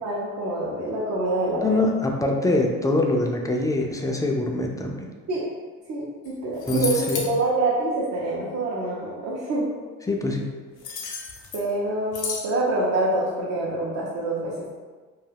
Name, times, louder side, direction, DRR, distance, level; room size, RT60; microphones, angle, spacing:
voice 1, 0.0-1.9 5.3-5.4 5.9-9.7 11.5-14.7, right 2 dB, 60° right, -6 dB, 0.6 m, -26 dB
voice 2, 1.5-5.1 6.7-7.2 10.1-10.5, left 2 dB, 10° left, 1 dB, 0.3 m, -24 dB
sound 1, 6.3-6.4 6.6-7.3 10.8-11.7 12.1-12.5, left 4 dB, 80° left, 0.6 m, -32 dB
2.3 x 2.2 x 3.3 m, 1.4 s
cardioid pair, 90°, 30 cm